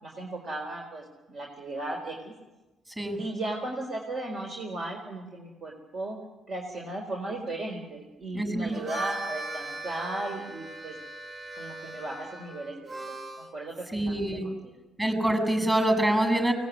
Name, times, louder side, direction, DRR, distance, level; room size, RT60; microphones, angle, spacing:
voice 1, 0.0-2.3 3.2-6.2 6.5-10.9 11.5-12.9 13.3-14.7, right 2 dB, 55° right, 1 dB, 4.5 m, -36 dB
voice 2, 8.3-8.7 13.9-14.5 15.0-16.5, right 1 dB, 20° right, 5 dB, 7.7 m, -25 dB
Harmonica, 8.6-13.5, right 2 dB, 35° right, 4.8 m, -38 dB
24.5 x 19.5 x 9.6 m, 1.1 s
cardioid pair, 90°, 0 cm